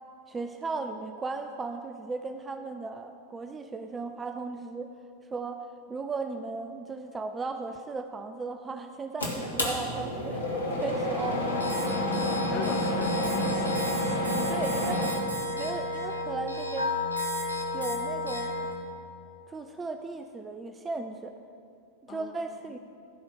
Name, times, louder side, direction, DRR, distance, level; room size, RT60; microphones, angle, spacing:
voice 1, 0.3-4.9 5.3-5.6 5.9-10.4 10.7-11.7 14.5-15.1 15.5-16.9 17.7-18.5 19.5-21.3 22.1-22.8, right 4 dB, 15° right, 7 dB, 0.5 m, -36 dB
sound 1, 9.2-15.1, left 1 dB, 75° left, 1.9 m, -29 dB
sound 2, 11.2-18.7, left 2 dB, 80° right, 1.9 m, -32 dB
voice 2, 12.2-13.7 14.2-14.4 22.1-22.4, left 4 dB, 35° left, 2 dB, 1.6 m, -40 dB
15.0 x 5.1 x 6.4 m, 2.4 s
figure-of-eight pair, 90°, 0 cm